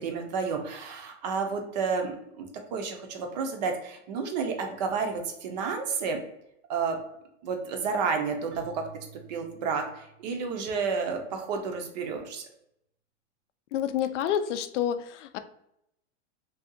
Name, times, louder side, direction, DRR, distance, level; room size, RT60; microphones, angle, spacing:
voice 1, 0.0-6.2 6.7-7.0 7.4-8.8 9.3-12.5, right 5 dB, 40° right, 4 dB, 0.5 m, -31 dB
Keyboard (musical), 8.5-10.8, right 4 dB, 85° right, 1.1 m, -51 dB
voice 2, 13.7-15.4, left 9 dB, 80° left, 11 dB, 0.5 m, -28 dB
2.7 x 2.3 x 3.6 m, 0.78 s
supercardioid pair, 165°, 36 cm